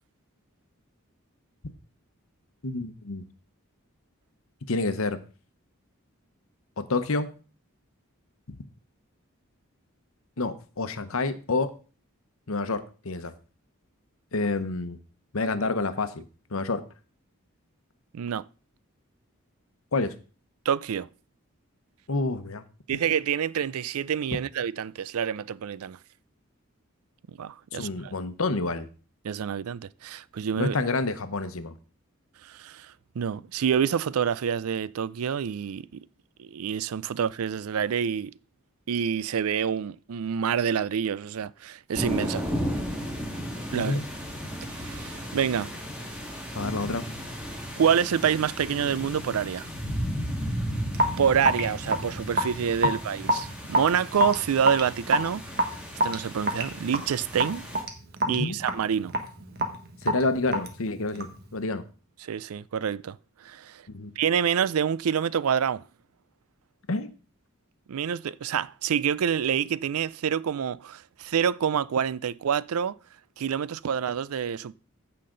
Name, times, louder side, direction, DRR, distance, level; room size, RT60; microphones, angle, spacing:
voice 1, 2.6-3.2 4.7-5.2 6.8-7.3 8.5-8.6 10.4-11.8 12.5-13.3 14.3-15.0 15.3-16.2 16.5-16.8 19.9-20.1 22.1-22.6 27.7-28.9 30.6-31.7 43.7-44.0 46.5-47.1 58.3-58.6 60.0-61.8 63.9-64.1 66.9-67.1, left 3 dB, 75° left, 1.0 m, -28 dB
voice 2, 18.1-18.5 20.7-21.1 22.9-26.0 27.4-28.1 29.2-30.7 32.4-36.0 36.4-38.3 38.9-42.4 43.7-44.0 44.8-45.7 47.8-49.7 51.2-55.4 56.0-57.6 58.3-59.1 62.2-63.8 64.2-65.8 67.9-73.0 73.4-74.7, right 8 dB, 85° right, 0.4 m, -27 dB
sound 1, 41.9-57.8, equal, 5° right, 1.9 m, -35 dB
Raindrop / Drip, 50.9-61.4, equal, 45° right, 1.5 m, -28 dB
15.0 x 5.8 x 3.9 m
head